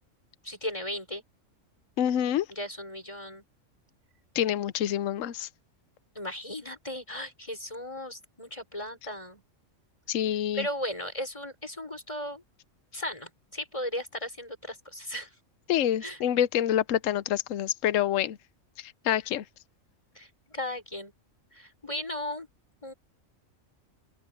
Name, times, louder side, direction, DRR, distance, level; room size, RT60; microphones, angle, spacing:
voice 1, 0.4-1.2 2.5-3.4 6.2-9.4 10.5-12.4 12.9-15.3 15.7-16.2 20.2-21.1 21.5-22.5 22.8-22.9, left 1 dB, 25° left, 5.6 m, -36 dB
voice 2, 2.0-2.5 4.3-5.5 10.1-10.7 15.7-18.4 18.8-19.4, left 11 dB, 80° left, 1.1 m, -27 dB
open air
omnidirectional pair, 1.3 m